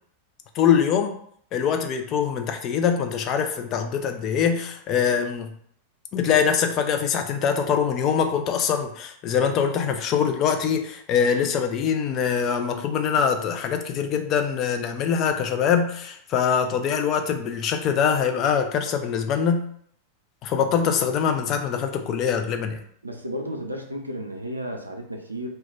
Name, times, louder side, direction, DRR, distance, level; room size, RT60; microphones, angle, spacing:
voice 1, 0.5-1.2 1.5-5.5 6.1-19.6 20.4-22.8, left 7 dB, 35° left, 5 dB, 0.4 m, -23 dB
voice 2, 23.0-25.5, equal, 85° right, 3 dB, 0.4 m, -33 dB
2.3 x 2.2 x 3.1 m, 0.63 s
figure-of-eight pair, 90°, 0 cm